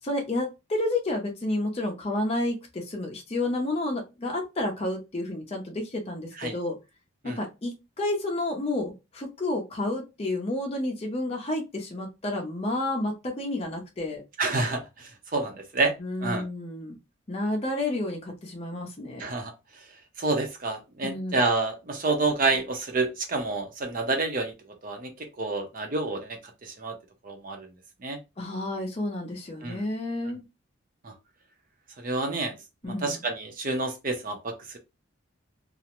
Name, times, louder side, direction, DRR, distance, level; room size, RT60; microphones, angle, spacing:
voice 1, 0.1-6.8 7.2-14.2 16.0-17.0 17.3-19.2 21.0-21.4 28.4-30.4 32.8-33.2, left 2 dB, 30° left, 0 dB, 0.5 m, -30 dB
voice 2, 14.4-15.9 16.2-16.4 19.2-19.8 20.2-24.5 24.8-26.9 27.2-27.7 28.0-28.2 29.6-29.9 31.0-31.1 32.0-32.5 32.8-34.8, right 3 dB, 40° right, 4 dB, 0.6 m, -29 dB
2.4 x 2.0 x 2.9 m, 0.25 s
head